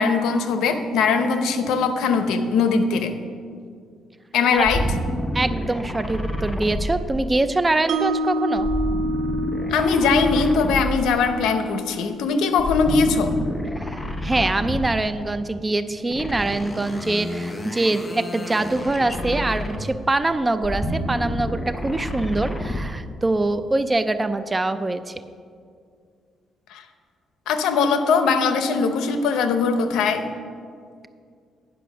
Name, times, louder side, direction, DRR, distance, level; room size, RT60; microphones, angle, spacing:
voice 1, 0.0-3.2 4.3-4.8 9.7-13.3 26.7-26.8 27.5-30.3, left 5 dB, 90° left, 8 dB, 0.7 m, -21 dB
sound 1, 4.6-7.6 8.6-11.3 12.5-15.1 16.1-20.1 20.5-23.0, equal, 15° left, 0.7 m, -29 dB
voice 2, 5.3-8.7 13.8-25.1, right 2 dB, 20° right, 11 dB, 0.4 m, -24 dB
Mallet percussion, 7.9-14.0, right 1 dB, 70° right, 0.7 m, -29 dB
10.0 x 5.9 x 6.0 m, 2.2 s
cardioid pair, 115°, 0 cm